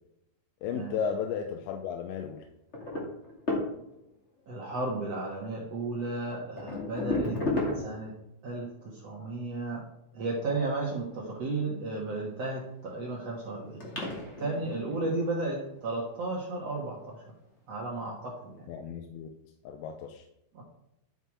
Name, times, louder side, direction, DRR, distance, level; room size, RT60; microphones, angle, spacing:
voice 1, 0.6-2.4 18.7-19.3 19.6-20.3, left 7 dB, 80° left, 4 dB, 2.9 m, -34 dB
sound 1, 2.7-4.1 5.6-5.7 6.3-8.2 12.0-12.7 13.3-13.4 13.8-15.8 16.7-17.0 17.9-18.0 18.4-18.5, left 2 dB, 30° left, 1.2 m, -34 dB
voice 2, 4.5-7.4 7.7-8.1 8.4-9.8 10.1-17.2 17.7-18.7 20.5-20.6, right 2 dB, 80° right, -3 dB, 1.4 m, -34 dB
11.0 x 5.8 x 4.8 m, 0.82 s
omnidirectional pair, 5.2 m